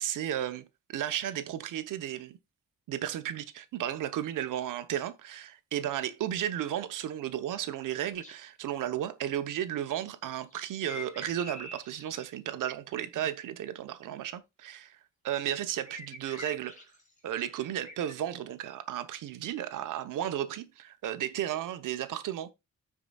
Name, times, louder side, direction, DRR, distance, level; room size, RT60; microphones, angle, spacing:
voice 1, 0.0-2.4 2.9-15.0 15.2-16.8 17.2-22.5, right 11 dB, 80° right, 1.0 m, -34 dB
sound 1, 8.1-8.4 10.2-12.4 15.9-18.2, left 2 dB, 25° left, 2.5 m, -45 dB
14.5 x 4.9 x 2.3 m
cardioid pair, 115°, 31 cm